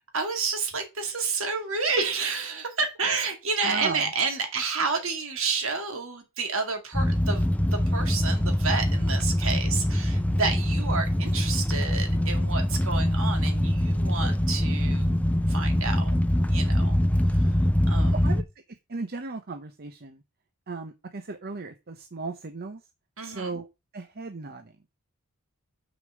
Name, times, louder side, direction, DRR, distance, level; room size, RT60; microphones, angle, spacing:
voice 1, 0.1-7.4 7.7-16.1 16.5-17.0 17.3-17.5 17.9-18.2 23.2-23.5, right 4 dB, 60° right, 2.3 m, -30 dB
voice 2, 3.6-4.0 17.9-18.4 18.9-20.2 20.7-22.8 23.2-23.7 23.9-24.8, right 3 dB, 45° right, 0.7 m, -36 dB
sound 1, 6.9-18.4, left 1 dB, 5° left, 0.6 m, -24 dB
6.5 x 5.2 x 6.4 m
head